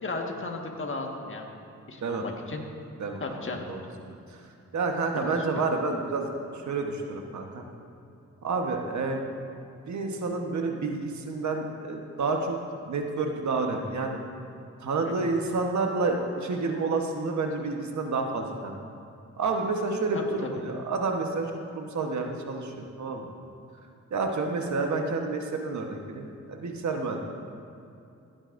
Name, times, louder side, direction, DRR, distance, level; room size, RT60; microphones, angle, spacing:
voice 1, 0.0-1.5 1.9-2.6 3.2-3.7 5.2-5.7 15.0-15.3 20.1-20.5, left 3 dB, 40° left, 1 dB, 1.6 m, -35 dB
voice 2, 3.0-3.8 4.1-4.2 4.7-6.3 6.5-7.6 8.4-9.2 9.9-12.6 12.9-14.2 14.8-18.7 19.4-23.3 24.1-27.2, right 3 dB, 70° right, 3 dB, 1.2 m, -29 dB
16.0 x 8.8 x 2.6 m, 2.7 s
cardioid pair, 60°, 30 cm